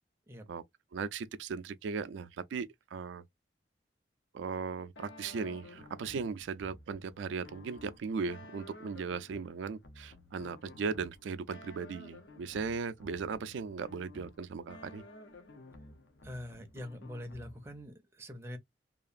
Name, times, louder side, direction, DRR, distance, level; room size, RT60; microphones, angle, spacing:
voice 1, 0.9-3.2 4.3-15.0, right 5 dB, 80° right, 0.3 m, -37 dB
sound 1, 5.0-17.9, left 2 dB, 70° left, 0.6 m, -53 dB
voice 2, 16.2-18.6, left 1 dB, 15° right, 0.5 m, -44 dB
2.8 x 2.4 x 2.4 m
head